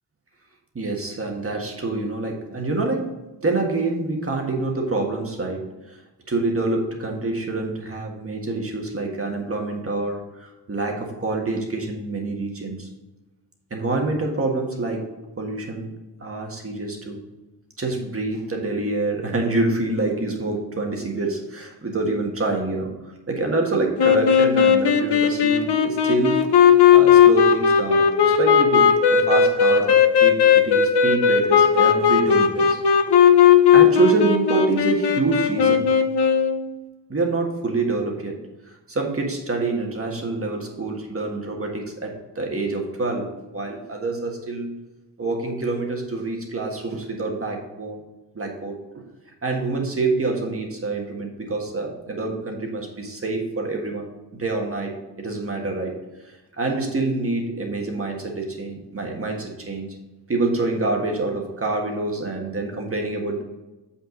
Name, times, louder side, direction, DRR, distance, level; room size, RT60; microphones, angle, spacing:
voice 1, 0.7-3.1 3.4-6.0 6.3-12.9 13.7-15.1 15.4-15.9 16.2-17.2 17.8-22.9 23.3-26.4 26.9-32.8 33.7-35.9 37.1-38.4 38.9-44.7 45.2-48.0 48.3-48.8 49.4-56.0 56.6-59.9 60.3-63.4, right 3 dB, 30° right, 1 dB, 1.6 m, -26 dB
sound 1, 24.0-36.6, left 7 dB, 65° left, 0.9 m, -16 dB
7.6 x 5.6 x 3.9 m, 1.1 s
wide cardioid pair, 120°, 43 cm